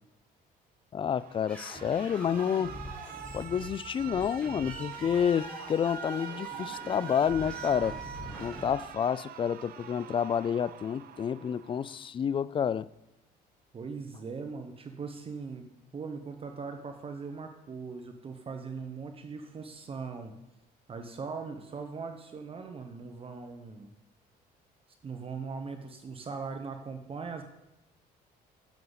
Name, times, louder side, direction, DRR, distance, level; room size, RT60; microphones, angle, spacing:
voice 1, 0.9-2.7 3.3-8.0 8.4-12.9, left 8 dB, 30° left, 0.3 m, -29 dB
Alarm, 1.1-12.1, right 9 dB, 60° right, 0.7 m, -44 dB
sound 1, 1.5-8.7, equal, 5° left, 4.1 m, -44 dB
voice 2, 13.7-15.7 15.9-20.3 20.9-23.9 25.0-27.4, right 5 dB, 35° right, 1.0 m, -40 dB
10.5 x 7.7 x 4.0 m
cardioid pair, 110°, 17 cm